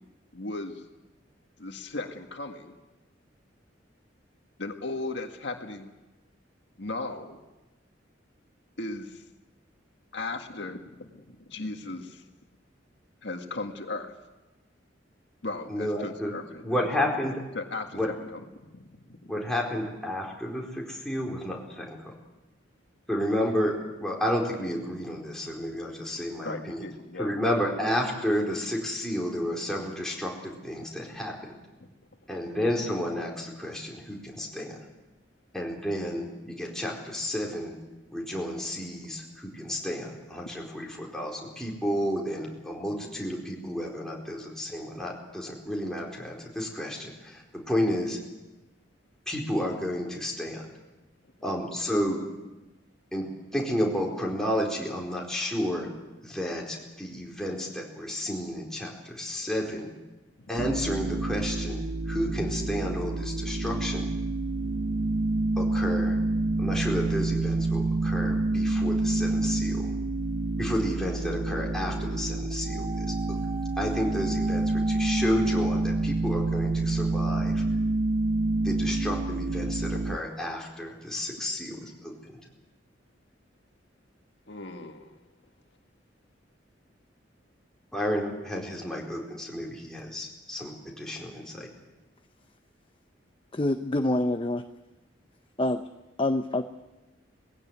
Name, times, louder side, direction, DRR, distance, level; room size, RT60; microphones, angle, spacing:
voice 1, 0.3-0.8 1.6-2.8 4.6-5.9 6.8-7.4 8.8-9.2 10.1-12.3 13.2-14.1 15.4-16.8 17.5-19.3 26.4-27.4 84.5-85.2, left 2 dB, 70° left, 4 dB, 1.9 m, -37 dB
voice 2, 15.7-16.3 16.6-17.4 17.9-18.1 19.3-22.0 23.1-23.7 24.0-26.8 27.2-31.6 32.3-34.8 35.5-37.7 38.1-48.2 49.3-50.6 51.4-52.2 53.1-53.3 53.5-55.9 56.2-59.9 60.5-64.1 65.6-66.2 66.6-69.9 70.6-73.4 73.8-77.6 78.6-82.1 87.9-91.7, equal, 5° left, -3 dB, 4.4 m, -31 dB
sound 1, 60.6-80.2, right 2 dB, 65° right, 0.6 m, -28 dB
sound 2, 72.6-76.7 77.0-77.1, right 3 dB, 30° right, 6.8 m, -42 dB
voice 3, 93.5-94.6 95.6-95.8 96.2-96.6, left 1 dB, 30° left, 7 dB, 0.7 m, -26 dB
20.0 x 16.5 x 9.4 m, 1.1 s
head